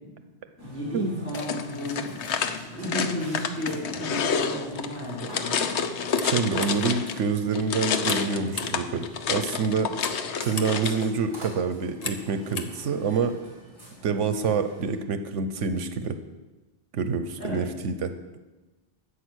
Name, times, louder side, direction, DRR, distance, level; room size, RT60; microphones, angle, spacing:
voice 1, 0.6-2.1 2.5-5.8 17.4-17.6, equal, 10° left, -8 dB, 5.2 m, -33 dB
Burping eructation, 0.6-15.0, right 1 dB, 20° right, 3.7 m, -45 dB
sound 1, 1.3-7.2 7.5-11.1, left 6 dB, 70° left, 1.0 m, -29 dB
sound 2, 6.0-13.4, left 4 dB, 35° left, 0.9 m, -41 dB
voice 2, 6.2-9.9 10.4-13.4 14.0-16.2 16.9-18.4, right 5 dB, 80° right, 10 dB, 1.1 m, -27 dB
12.5 x 8.4 x 6.3 m, 1.1 s
omnidirectional pair, 1.2 m